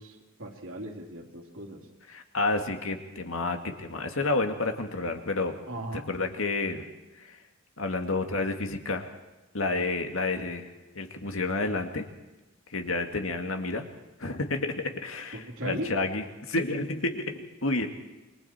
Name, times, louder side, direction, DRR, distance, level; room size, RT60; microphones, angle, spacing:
voice 1, 0.0-1.8 5.7-6.1 15.3-15.9, right 1 dB, 70° right, 1 dB, 3.2 m, -37 dB
voice 2, 2.1-5.6 5.9-6.8 7.2-7.4 7.8-9.1 9.5-10.7 11.0-12.1 12.7-13.8 14.2-17.9, left 2 dB, 75° left, 5 dB, 2.3 m, -30 dB
28.5 x 22.5 x 4.5 m, 1.1 s
head